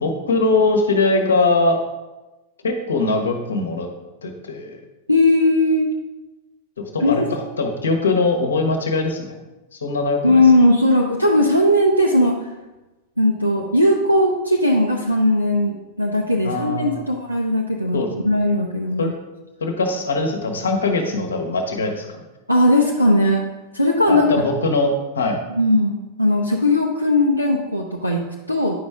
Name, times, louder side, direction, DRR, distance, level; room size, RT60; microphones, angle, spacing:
voice 1, 0.0-1.8 2.6-3.9 4.2-4.8 6.8-9.3 9.7-10.4 16.4-17.0 17.9-18.1 19.0-19.1 19.6-22.2 24.1-25.4, left 3 dB, 70° left, 4 dB, 1.2 m, -21 dB
voice 2, 5.1-5.9 7.0-7.2 10.2-12.5 13.2-19.1 22.5-23.4 23.7-24.3 25.6-28.8, left 1 dB, 90° left, -2 dB, 0.6 m, -18 dB
9.6 x 5.3 x 3.6 m, 1.1 s
figure-of-eight pair, 90°, 0 cm